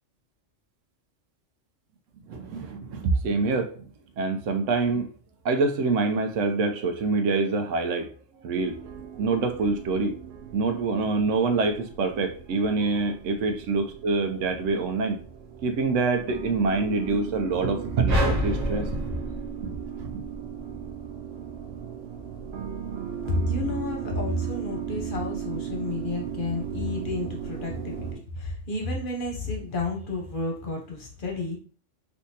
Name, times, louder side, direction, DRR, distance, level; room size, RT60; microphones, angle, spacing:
voice 1, 2.3-3.9 4.2-5.1 5.4-8.1 8.4-8.8 9.2-10.2 10.5-15.2 15.6-19.1 19.6-20.2, right 3 dB, 90° right, 6 dB, 1.0 m, -26 dB
sound 1, 8.6-28.1, right 8 dB, 65° right, 0.8 m, -37 dB
sound 2, 18.1-20.5, equal, 35° right, 0.8 m, -27 dB
voice 2, 23.3-31.6, left 2 dB, 50° left, 0 dB, 0.8 m, -31 dB
3.4 x 2.7 x 2.7 m, 0.41 s
omnidirectional pair, 1.3 m